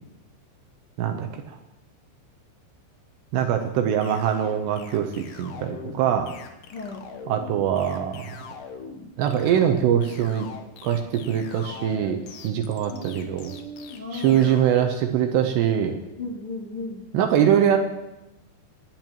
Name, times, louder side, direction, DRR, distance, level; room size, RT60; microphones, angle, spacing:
voice 1, 1.0-1.6 3.3-6.3 7.3-8.4 9.2-10.5 10.8-13.5 14.1-16.0 17.1-17.8, right 9 dB, 80° right, 4 dB, 2.7 m, -23 dB
sound 1, 4.0-14.9, left 5 dB, 75° left, 2.0 m, -42 dB
voice 2, 6.7-7.1 12.9-14.5 16.2-17.0, left 2 dB, 45° left, -5 dB, 1.8 m, -36 dB
26.0 x 10.5 x 3.0 m, 0.91 s
omnidirectional pair, 5.4 m